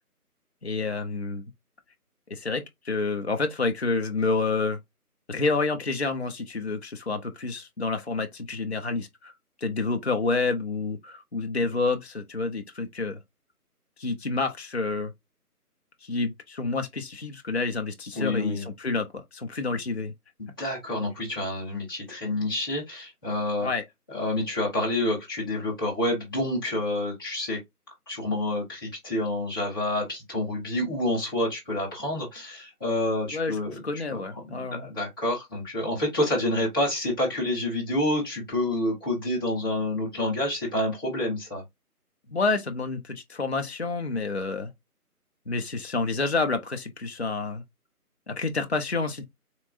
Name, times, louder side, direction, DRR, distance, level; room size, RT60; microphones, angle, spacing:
voice 1, 0.6-1.4 2.3-4.8 5.3-9.3 9.6-13.2 14.0-15.1 16.0-20.1 23.6-23.8 33.3-33.6 33.8-34.9 42.3-44.7 45.5-47.6 48.3-49.3, left 3 dB, 45° left, 0.5 m, -28 dB
voice 2, 18.1-18.7 20.4-23.7 24.1-27.6 28.1-41.6, left 1 dB, 15° left, 1.3 m, -28 dB
3.5 x 3.0 x 2.5 m
figure-of-eight pair, 170°, 47 cm